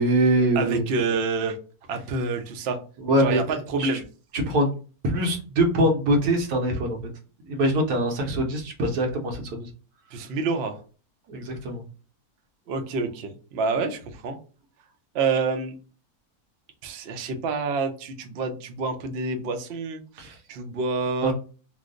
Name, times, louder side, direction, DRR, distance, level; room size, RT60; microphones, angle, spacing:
voice 1, 0.0-0.9 3.0-4.0 4.3-4.7 5.0-7.1 7.5-9.7 11.3-11.8 20.2-20.4 21.2-21.3, right 1 dB, 85° right, 2 dB, 1.4 m, -23 dB
voice 2, 0.6-1.6 1.9-2.8 3.2-4.0 10.1-10.8 12.7-14.4 15.1-15.7 16.8-21.3, right 4 dB, 65° right, 6 dB, 0.6 m, -28 dB
3.1 x 2.0 x 3.7 m, 0.37 s
omnidirectional pair, 1.6 m